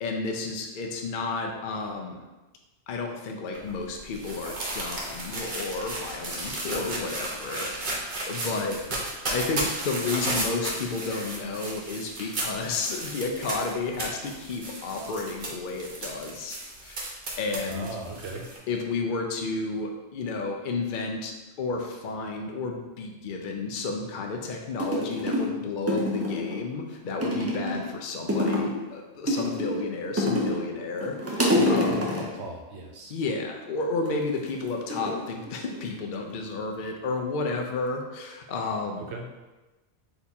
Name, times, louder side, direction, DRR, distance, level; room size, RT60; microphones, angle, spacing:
voice 1, 0.0-2.2 2.9-8.8 9.3-17.9 18.7-32.0 33.1-39.1, left 3 dB, 55° left, 2 dB, 0.6 m, -32 dB
sound 1, 3.5-18.6, right 2 dB, 50° right, 0.9 m, -34 dB
voice 2, 17.6-18.5 31.5-33.2 39.1-39.2, right 3 dB, 75° right, 1 dB, 1.0 m, -37 dB
sound 2, 24.4-24.5 24.8-25.5 25.9-26.6 27.2-27.9 28.3-28.8 29.3-30.7 31.0-32.4 34.0-34.4 34.9-36.0 36.3-36.8, left 1 dB, 20° right, 0.4 m, -27 dB
3.5 x 2.9 x 4.2 m, 1.1 s
omnidirectional pair, 1.2 m